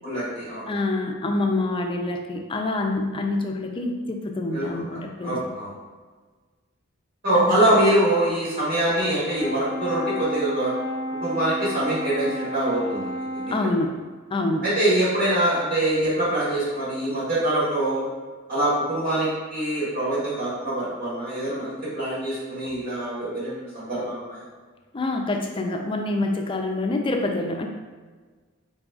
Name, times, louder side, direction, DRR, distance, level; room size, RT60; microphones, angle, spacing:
voice 1, 0.0-0.8 4.5-4.8 5.2-5.7 7.2-10.7 11.2-13.5 14.6-18.0 18.5-24.4, right 1 dB, 60° right, -10 dB, 1.5 m, -24 dB
voice 2, 0.7-5.4 7.5-7.6 13.5-14.0 14.3-14.7 24.9-27.7, left 2 dB, 25° left, 3 dB, 0.3 m, -26 dB
Brass instrument, 9.3-13.7, equal, 45° right, 1.3 m, -31 dB
3.9 x 3.7 x 2.3 m, 1.4 s
head